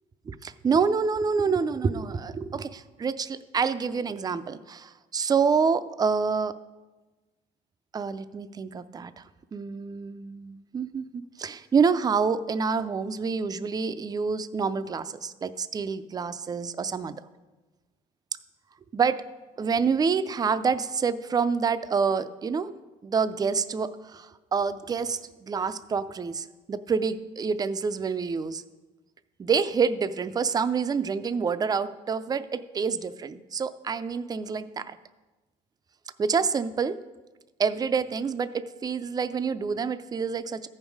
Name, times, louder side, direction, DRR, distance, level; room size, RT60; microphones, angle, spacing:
voice 1, 0.3-6.6 7.9-9.2 9.5-17.1 18.9-19.2 19.6-22.7 23.0-28.6 29.4-35.0 36.2-37.0 37.6-40.7, right 5 dB, 25° right, 13 dB, 0.4 m, -27 dB
14.0 x 5.4 x 4.7 m, 1.2 s
cardioid pair, 110°, 17 cm